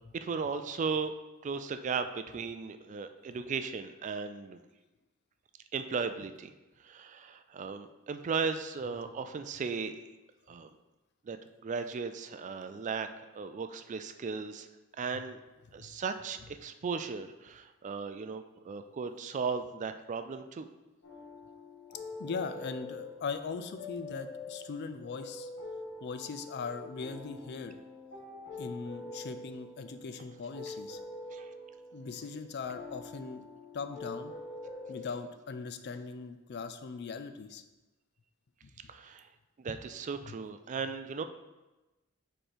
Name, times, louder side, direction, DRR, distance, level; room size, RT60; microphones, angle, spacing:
voice 1, 0.1-1.1 1.4-4.6 5.7-6.5 6.8-10.0 10.5-10.7 11.3-13.1 13.3-14.7 15.0-15.4 15.7-20.7 31.3-31.5 38.9-39.3 39.6-41.2, right 5 dB, 35° right, 9 dB, 0.3 m, -36 dB
sound 1, 21.0-35.3, left 2 dB, 75° left, 2.1 m, -45 dB
voice 2, 22.2-25.5 26.0-27.8 28.6-31.0 31.9-33.5 33.7-34.3 34.9-37.6 38.6-38.7 39.7-39.8 40.3-40.4, left 5 dB, 55° left, 9 dB, 0.4 m, -40 dB
4.4 x 4.4 x 5.0 m, 1.1 s
head